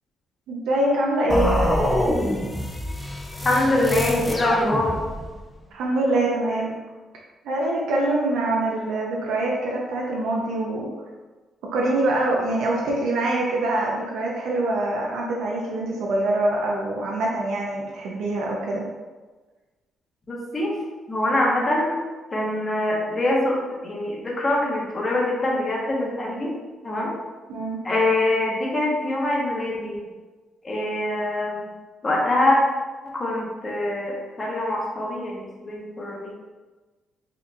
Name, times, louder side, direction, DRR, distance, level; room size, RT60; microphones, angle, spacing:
voice 1, 0.5-1.6 5.7-6.7 7.4-10.9 11.7-18.8 27.5-27.8, right 2 dB, 80° right, -3 dB, 0.5 m, -24 dB
sound 1, 1.3-5.4, left 1 dB, 10° left, 0.4 m, -25 dB
voice 2, 3.4-5.0 20.3-20.7 21.1-21.9 22.3-23.6 23.8-26.5 26.8-27.1 27.8-30.0 30.6-31.7 32.0-32.6 33.1-36.3, left 1 dB, 30° left, -3 dB, 0.9 m, -24 dB
4.3 x 2.6 x 2.5 m, 1.3 s
cardioid pair, 90°, 0 cm